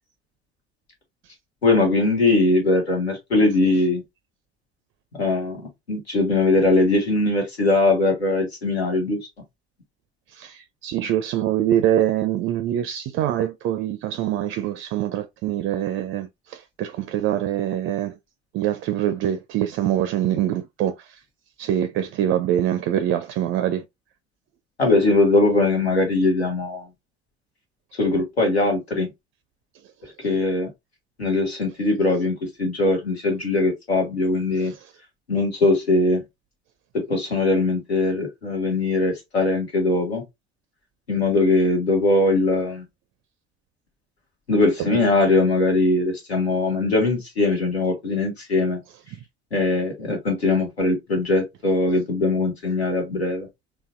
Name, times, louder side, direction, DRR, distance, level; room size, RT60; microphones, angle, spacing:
voice 1, 1.6-4.0 5.1-5.6 5.9-9.2 24.8-26.9 28.0-29.1 30.2-30.7 31.2-34.7 35.3-36.2 36.9-40.2 41.1-42.8 44.5-48.8 49.5-53.5, left 2 dB, 90° left, 1.3 m, -21 dB
voice 2, 10.3-18.2 18.5-21.2 21.6-23.8 34.6-34.9 44.8-45.0 49.1-49.2, right 11 dB, 40° right, 0.4 m, -24 dB
3.9 x 2.4 x 2.4 m
figure-of-eight pair, 65°, 31 cm